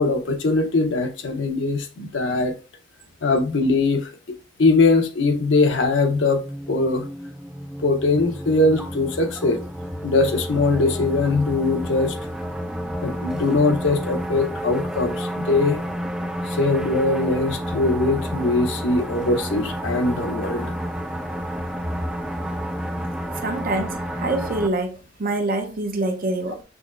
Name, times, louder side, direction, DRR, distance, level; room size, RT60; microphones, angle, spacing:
voice 1, 0.0-2.5 3.2-4.1 4.6-6.4 6.7-7.1 7.8-9.6 10.0-12.2 13.0-15.8 16.5-20.7, left 3 dB, 75° left, 0.7 m, -21 dB
sound 1, 5.7-24.7, equal, 5° right, 0.3 m, -30 dB
voice 2, 23.4-26.6, right 2 dB, 50° right, 0.6 m, -26 dB
6.0 x 3.0 x 2.4 m
head